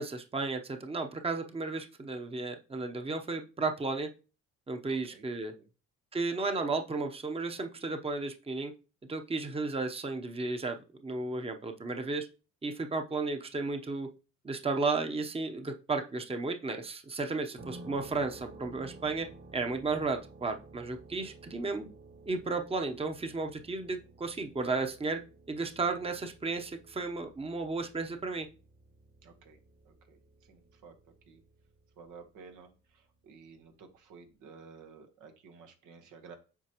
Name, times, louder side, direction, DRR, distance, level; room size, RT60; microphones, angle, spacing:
voice 1, 0.0-4.1 4.7-5.5 6.1-8.7 9.1-10.8 11.0-12.3 12.6-14.1 14.4-19.3 19.5-21.9 22.3-25.2 25.5-28.5, right 3 dB, 20° right, 5 dB, 0.8 m, -33 dB
voice 2, 4.9-5.2 5.6-5.7 29.2-29.6 29.8-30.9 31.2-31.4 32.0-36.4, right 5 dB, 85° right, 4 dB, 1.4 m, -53 dB
sound 1, 17.6-32.2, right 2 dB, 50° right, 2.5 m, -53 dB
8.1 x 4.9 x 3.0 m, 0.34 s
cardioid pair, 90°, 30 cm